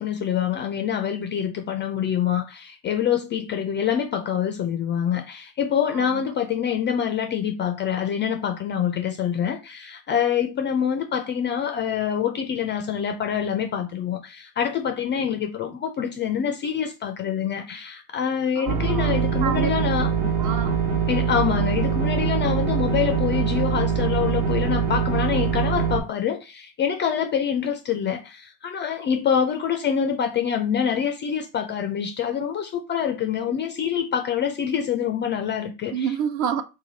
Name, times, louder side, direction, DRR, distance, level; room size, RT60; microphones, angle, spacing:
voice 1, 0.0-20.1 21.1-36.1, left 8 dB, 25° left, 0.3 m, -26 dB
voice 2, 5.9-6.2 18.6-19.7 20.2-20.8 35.9-36.6, right 8 dB, 40° right, 0.5 m, -29 dB
sound 1, 18.7-26.0, right 6 dB, 60° right, 1.2 m, -23 dB
3.2 x 2.3 x 3.8 m
hypercardioid pair, 90°, 47 cm